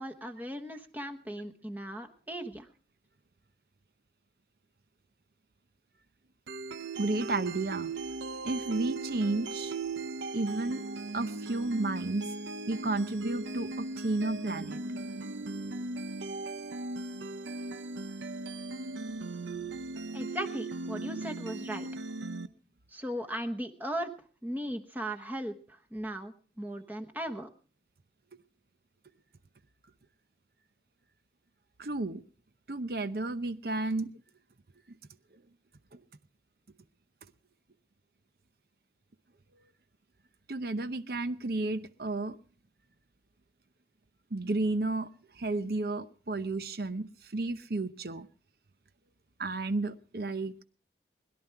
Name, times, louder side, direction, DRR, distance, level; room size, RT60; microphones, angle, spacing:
voice 1, 0.0-2.7 20.1-21.9 22.9-24.1 24.4-27.5, equal, 10° right, 4 dB, 1.1 m, -37 dB
sound 1, 6.5-22.5, right 3 dB, 85° right, 0.8 m, -38 dB
voice 2, 7.0-7.9 8.4-9.7 10.3-10.8 11.1-12.3 12.7-14.8 31.8-32.2 32.7-34.1 35.9-36.0 40.5-42.4 44.3-45.1 45.3-48.3 49.4-50.6, right 2 dB, 55° right, 12 dB, 0.8 m, -32 dB
21.5 x 11.5 x 4.5 m, 0.41 s
head